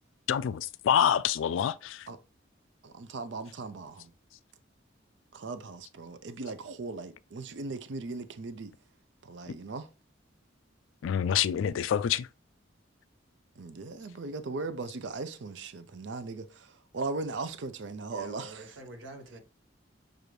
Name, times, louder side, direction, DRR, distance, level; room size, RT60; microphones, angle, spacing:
voice 1, 0.3-2.1 11.0-12.3, left 9 dB, 85° left, 0.3 m, -27 dB
voice 2, 2.8-4.1 5.3-8.7 9.2-9.9 13.6-18.8, right 3 dB, 70° right, 0.5 m, -38 dB
voice 3, 18.1-19.4, right 1 dB, 90° right, 1.2 m, -46 dB
6.6 x 2.6 x 3.0 m
head